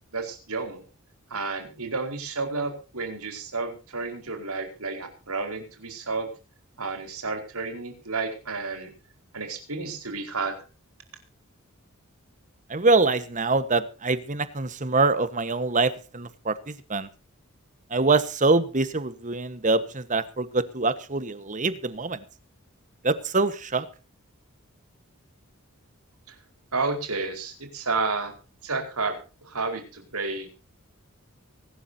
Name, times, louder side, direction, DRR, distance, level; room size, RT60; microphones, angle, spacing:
voice 1, 0.1-0.8 1.3-6.3 6.8-8.9 9.3-10.6 26.7-28.3 28.6-30.5, right 3 dB, 85° right, 5 dB, 4.7 m, -31 dB
voice 2, 12.7-17.1 17.9-22.2 23.0-23.9, right 3 dB, 35° right, 13 dB, 1.4 m, -24 dB
24.0 x 12.5 x 2.8 m, 0.34 s
head